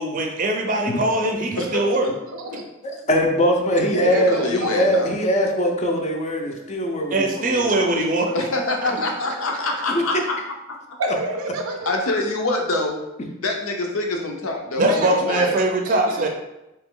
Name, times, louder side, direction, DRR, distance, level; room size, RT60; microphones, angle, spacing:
voice 1, 0.0-2.1 7.1-8.3 14.8-16.3, right 2 dB, 40° right, 1 dB, 0.5 m, -21 dB
voice 2, 1.6-2.1 2.5-2.6 4.1-5.1 8.3-10.1 11.9-13.0 13.4-15.6, left 2 dB, 85° left, 2 dB, 0.7 m, -25 dB
voice 3, 2.3-2.7 3.9-4.9 7.4-7.9 8.9-9.3 11.0-11.9 14.8-15.5 15.8-16.3, right 2 dB, 85° right, 3 dB, 0.5 m, -30 dB
voice 4, 3.1-7.7 9.9-10.0, equal, 35° left, 2 dB, 0.5 m, -21 dB
3.3 x 3.0 x 3.7 m, 0.93 s
head